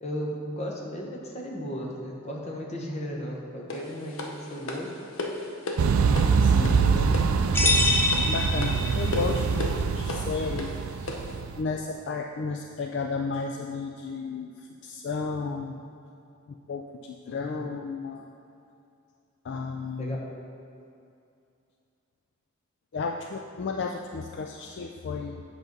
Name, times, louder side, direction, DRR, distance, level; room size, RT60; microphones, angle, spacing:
voice 1, 0.0-5.1 6.6-7.2 17.3-17.7 20.0-20.2, equal, 30° left, -1 dB, 1.0 m, -35 dB
sound 1, 3.7-11.4, left 2 dB, 70° left, 0.8 m, -36 dB
sound 2, 5.8-11.6, right 5 dB, 80° right, 0.4 m, -24 dB
voice 2, 6.4-7.1 8.3-11.3 11.6-15.8 16.5-18.3 19.4-20.2 22.9-25.4, left 4 dB, 55° left, 3 dB, 0.3 m, -33 dB
sound 3, 7.5-9.4, left 2 dB, 10° left, 0.6 m, -25 dB
8.0 x 6.0 x 3.9 m, 2.6 s
head